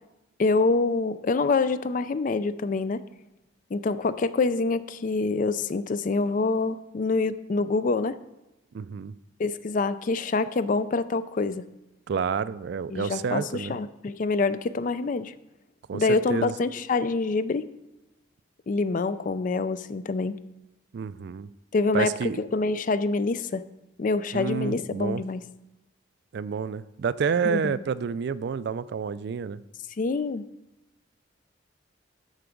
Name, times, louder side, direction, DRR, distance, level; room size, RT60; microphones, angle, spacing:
voice 1, 0.4-3.0 3.7-8.2 9.4-11.6 12.9-15.3 15.9-17.7 18.7-20.4 21.7-22.1 22.4-23.6 24.0-25.4 27.4-27.8 30.0-30.4, left 3 dB, 45° left, 14 dB, 0.4 m, -26 dB
voice 2, 8.7-9.1 12.1-13.8 15.9-16.0 16.3-16.5 20.9-21.5 21.9-22.4 24.3-25.2 26.3-29.6, right 6 dB, 60° right, 16 dB, 0.3 m, -29 dB
13.0 x 4.7 x 5.1 m, 0.97 s
head